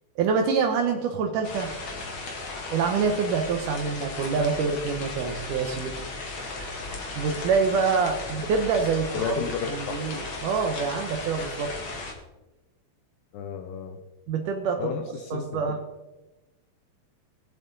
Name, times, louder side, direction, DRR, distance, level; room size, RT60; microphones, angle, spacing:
voice 1, 0.2-1.8 2.7-5.9 6.4-9.3 9.7-11.7 14.3-14.9 15.3-15.8, right 5 dB, 85° right, 4 dB, 1.8 m, -26 dB
sound 1, 1.4-12.1, left 3 dB, 50° left, 1.6 m, -36 dB
voice 2, 9.1-10.0 13.3-14.0 14.8-15.8, left 7 dB, 85° left, 6 dB, 2.0 m, -32 dB
22.0 x 7.7 x 3.9 m, 1.1 s
omnidirectional pair, 5.2 m